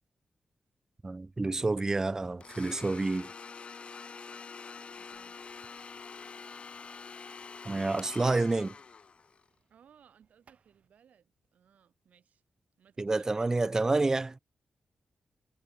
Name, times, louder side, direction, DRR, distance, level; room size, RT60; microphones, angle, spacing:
voice 1, 1.0-3.3 7.6-8.8 13.0-14.4, right 3 dB, 20° right, 0.3 m, -29 dB
Domestic sounds home sounds, 2.4-9.5, left 5 dB, 50° left, 2.2 m, -46 dB
sound 1, 4.7-10.9, right 6 dB, 60° right, 7.7 m, -71 dB
voice 2, 5.0-5.4 9.7-12.4 12.8-13.5, right 8 dB, 75° right, 3.3 m, -62 dB
cardioid pair, 85°, 3 cm